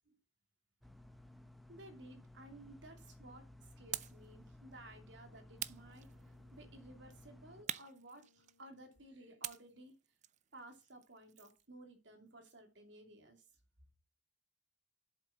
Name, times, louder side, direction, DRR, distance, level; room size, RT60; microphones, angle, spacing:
sound 1, 0.8-7.6, left 1 dB, ahead, 0.8 m, -58 dB
voice 1, 1.7-9.9 10.5-13.5, right 1 dB, 65° right, 5 dB, 2.8 m, -56 dB
sound 2, 3.9-4.3 5.6-6.5 7.7-8.8 9.4-11.6, right 11 dB, 40° right, 0.4 m, -46 dB
Brass instrument, 5.5-9.9, left 5 dB, 65° left, 2.9 m, -76 dB
7.8 x 7.5 x 7.1 m, 0.30 s
head